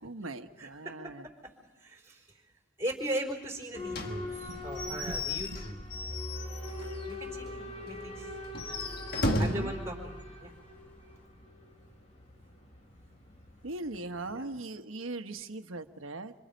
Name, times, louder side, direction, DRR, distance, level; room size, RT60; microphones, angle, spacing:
voice 1, 0.0-1.2 4.5-4.6 4.9-5.1 5.5-5.6 9.2-9.7 13.6-16.3, right 2 dB, 90° right, 8 dB, 1.2 m, -39 dB
voice 2, 0.6-1.1 1.4-1.5 1.8-2.5 2.8-5.8 7.1-8.3 9.4-10.5 14.3-14.6, right 1 dB, 15° right, 0 dB, 4.2 m, -39 dB
Boat Water vehicle / Alarm, 3.7-14.4, left 2 dB, 30° left, 2.1 m, -44 dB
Slam / Squeak / Wood, 3.9-7.1 7.5-7.6 7.9-8.0 8.5-9.8, left 1 dB, 50° left, 1.7 m, -34 dB
sound 1, 5.9-10.9, equal, 10° left, 2.0 m, -44 dB
27.0 x 26.0 x 5.3 m, 1.1 s
head